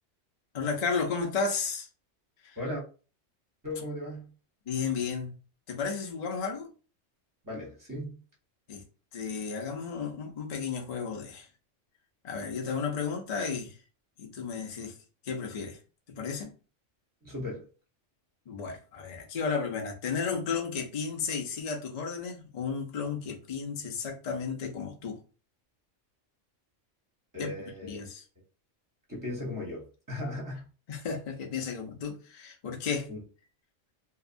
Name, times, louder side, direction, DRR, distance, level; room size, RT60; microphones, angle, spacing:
voice 1, 0.5-1.9 2.4-2.6 4.7-5.3 5.7-6.7 8.7-8.8 9.1-11.5 12.2-13.7 14.2-15.0 15.2-15.8 16.1-16.5 18.5-25.2 27.4-27.5 27.9-28.2 30.9-33.1, left 5 dB, 45° left, 0.6 m, -33 dB
voice 2, 3.6-4.3 7.4-8.2 17.2-17.7 27.3-28.0 29.1-30.6 33.1-33.2, left 1 dB, 20° right, 0.8 m, -37 dB
2.7 x 2.2 x 2.5 m
omnidirectional pair, 1.3 m